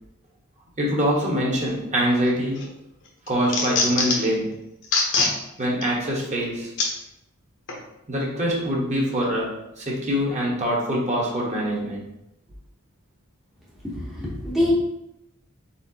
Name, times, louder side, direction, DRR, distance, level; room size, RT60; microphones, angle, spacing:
voice 1, 0.8-2.7 3.3-4.6 5.6-6.7 8.1-12.1, equal, 35° right, -3 dB, 1.1 m, -24 dB
sound 1, 2.2-2.7 3.1-4.3 4.8-5.3 5.8-5.9 6.8-6.9 7.7-7.8, left 3 dB, 60° left, 0.9 m, -23 dB
voice 2, 13.8-14.7, left 1 dB, ahead, -7 dB, 0.8 m, -25 dB
4.3 x 4.0 x 2.8 m, 0.85 s
head